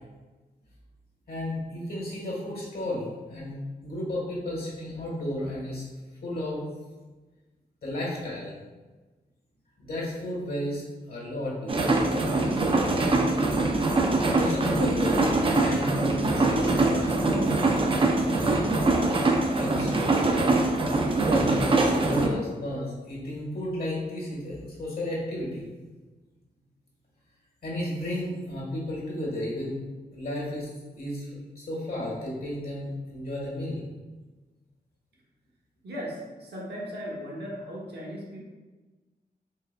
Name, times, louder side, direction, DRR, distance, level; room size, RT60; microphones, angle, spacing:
voice 1, 1.3-5.8 6.2-6.6 7.8-8.5 9.8-10.8 11.1-13.2 14.3-15.2 15.6-17.5 18.3-18.9 19.5-20.3 21.2-25.7 27.6-29.8 30.1-30.7 30.9-31.3 31.5-33.8, left 1 dB, 65° left, -4 dB, 1.4 m, -33 dB
sound 1, 11.7-22.3, right 2 dB, 30° right, 0.4 m, -23 dB
voice 2, 35.8-38.4, equal, 75° right, -5 dB, 1.2 m, -37 dB
4.6 x 3.3 x 2.2 m, 1.2 s
wide cardioid pair, 120°, 17 cm